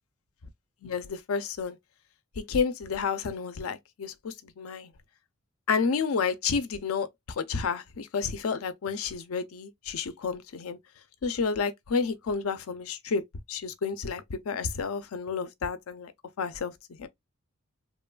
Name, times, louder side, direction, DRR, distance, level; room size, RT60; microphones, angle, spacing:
voice 1, 0.8-1.8 2.4-4.9 5.7-10.8 11.2-16.1 16.4-16.7 17.0-17.1, left 5 dB, 85° left, 0.5 m, -30 dB
3.0 x 2.2 x 2.2 m
head